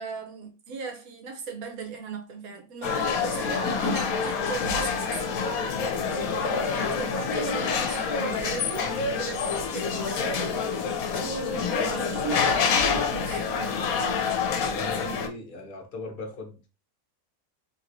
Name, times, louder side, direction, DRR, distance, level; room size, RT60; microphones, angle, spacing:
voice 1, 0.0-5.8 6.0-9.5 9.7-10.9 11.2-13.9, right 5 dB, 75° right, 1.2 m, -38 dB
sound 1, 2.8-15.3, left 5 dB, 80° left, 1.0 m, -27 dB
voice 2, 14.6-16.7, left 2 dB, 45° left, 0.7 m, -38 dB
2.9 x 2.9 x 2.5 m
omnidirectional pair, 1.5 m